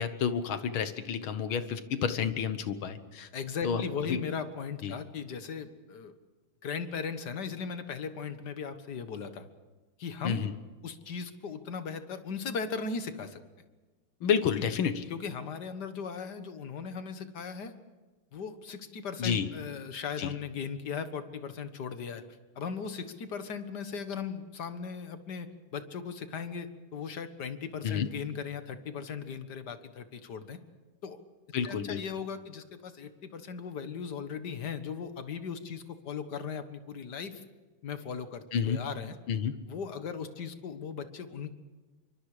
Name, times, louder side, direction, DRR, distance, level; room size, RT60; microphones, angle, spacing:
voice 1, 0.0-3.3 3.6-3.8 4.1-4.2 4.8-4.9 10.2-10.5 14.2-15.1 19.2-19.5 20.2-20.3 27.8-28.1 31.5-32.0 38.5-38.8 39.3-39.6, left 7 dB, 75° left, 11 dB, 2.0 m, -30 dB
voice 2, 3.3-6.1 6.6-9.5 10.0-10.4 10.8-13.4 14.6-14.7 15.1-17.7 18.3-22.2 22.6-30.6 31.0-31.2 31.7-37.4 37.8-39.2 39.7-41.5, left 6 dB, 55° left, 9 dB, 1.9 m, -38 dB
27.0 x 24.5 x 5.0 m, 1.3 s
omnidirectional pair, 2.3 m